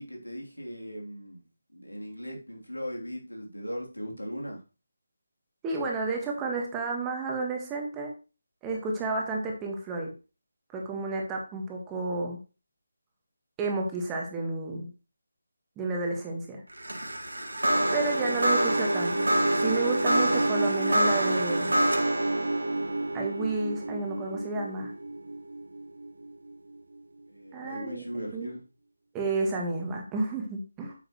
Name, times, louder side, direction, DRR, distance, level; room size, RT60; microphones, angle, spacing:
voice 1, 0.0-1.4 1.7-4.6 27.3-28.6, equal, 85° left, 0 dB, 3.1 m, -38 dB
voice 2, 5.6-8.1 8.6-10.1 10.7-12.4 13.6-14.9 15.8-16.6 17.9-21.7 23.1-24.9 27.5-28.5 29.1-30.9, right 3 dB, 10° right, 0 dB, 1.6 m, -31 dB
sound 1, 16.7-26.1, right 1 dB, 70° right, 1.9 m, -27 dB
9.1 x 7.1 x 3.1 m, 0.31 s
figure-of-eight pair, 155°, 0 cm